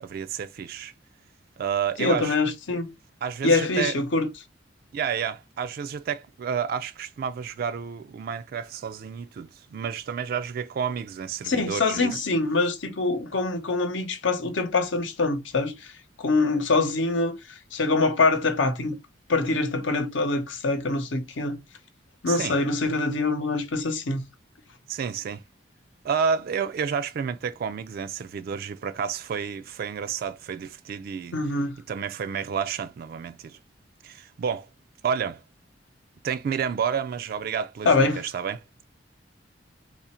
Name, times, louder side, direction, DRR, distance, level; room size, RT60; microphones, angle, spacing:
voice 1, 0.0-0.9 1.6-2.4 3.2-4.0 4.9-12.2 22.3-22.6 24.9-25.4 26.0-31.4 31.9-33.6 34.0-34.7 35.0-35.4 36.2-38.6, right 7 dB, 55° right, 0.3 m, -30 dB
voice 2, 2.0-2.9 3.4-4.3 11.4-15.9 16.2-19.0 19.3-21.6 22.2-24.2 31.3-31.7 37.8-38.2, left 3 dB, 90° left, 0.9 m, -24 dB
3.3 x 2.4 x 4.2 m
head